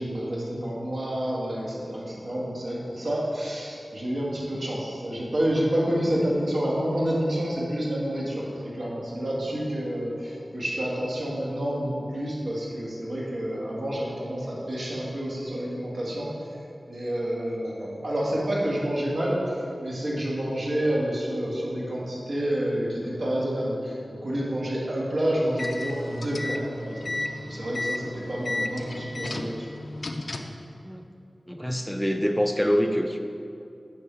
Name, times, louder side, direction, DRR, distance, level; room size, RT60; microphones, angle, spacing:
voice 1, 0.0-16.3 16.9-29.7, equal, 80° right, -6 dB, 1.9 m, -29 dB
sound 1, 25.4-30.6, left 2 dB, 60° left, 0.5 m, -33 dB
voice 2, 31.5-33.2, equal, 5° left, 5 dB, 0.4 m, -25 dB
9.7 x 5.5 x 3.4 m, 2.6 s
wide cardioid pair, 70°, 0 cm